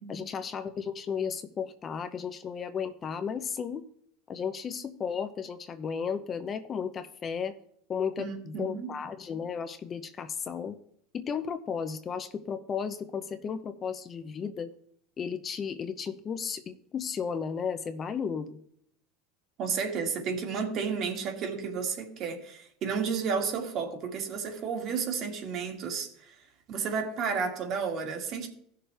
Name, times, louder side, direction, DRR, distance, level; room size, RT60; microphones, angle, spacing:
voice 1, 0.1-3.8 4.3-7.6 7.9-10.8 11.1-14.7 15.2-18.6, left 6 dB, 25° left, 10 dB, 0.7 m, -34 dB
voice 2, 8.2-9.0 19.6-26.3 26.7-28.5, right 6 dB, 45° right, 3 dB, 2.2 m, -32 dB
15.5 x 6.7 x 3.4 m, 0.67 s
supercardioid pair, 135°, 0 cm